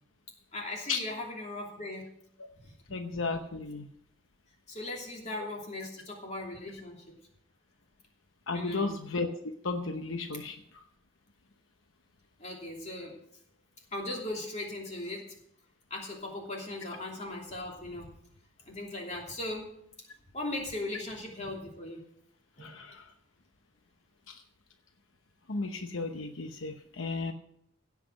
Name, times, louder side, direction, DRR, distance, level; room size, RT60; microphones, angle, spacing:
voice 1, 0.5-2.0 4.7-7.2 8.5-8.9 12.4-13.2 13.9-15.2 15.9-18.1 18.7-19.7 20.3-22.0 22.6-22.7, left 2 dB, 35° left, -1 dB, 2.9 m, -38 dB
voice 2, 2.9-3.9 8.5-9.3 9.6-10.6 22.6-23.1 24.3-24.4 25.5-27.3, left 3 dB, 80° left, 6 dB, 0.9 m, -34 dB
16.0 x 5.9 x 6.4 m, 0.72 s
head